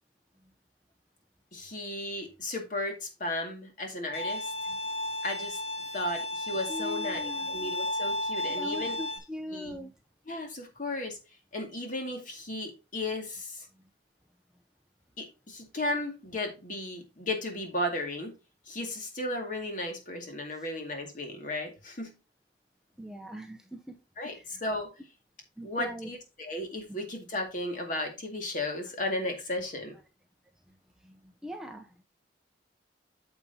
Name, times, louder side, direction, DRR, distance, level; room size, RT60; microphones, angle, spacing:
voice 1, 1.5-4.5 5.2-5.6 5.9-9.0 9.5-9.7 10.3-11.2 11.5-13.7 15.2-18.4 18.7-22.1 24.2-24.9 25.6-30.0, left 1 dB, 40° left, 3 dB, 2.2 m, -35 dB
Bowed string instrument, 4.1-9.2, left 1 dB, 80° left, 2.2 m, -33 dB
voice 2, 6.7-7.5 8.6-9.9 23.0-24.0 24.3-24.5 25.6-26.1 31.0-32.0, equal, 5° right, 3 dB, 0.6 m, -40 dB
9.0 x 7.0 x 2.8 m, 0.28 s
head